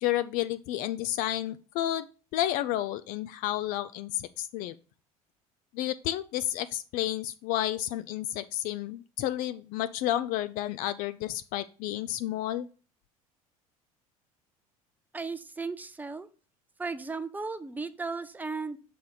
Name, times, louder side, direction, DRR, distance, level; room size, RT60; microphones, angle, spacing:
voice 1, 0.0-2.1 2.3-4.7 5.7-12.7, left 13 dB, 50° left, 13 dB, 0.4 m, -31 dB
voice 2, 15.1-16.3 16.8-18.8, right 4 dB, 10° right, 11 dB, 0.6 m, -35 dB
6.6 x 4.0 x 3.9 m, 0.37 s
figure-of-eight pair, 70°, 18 cm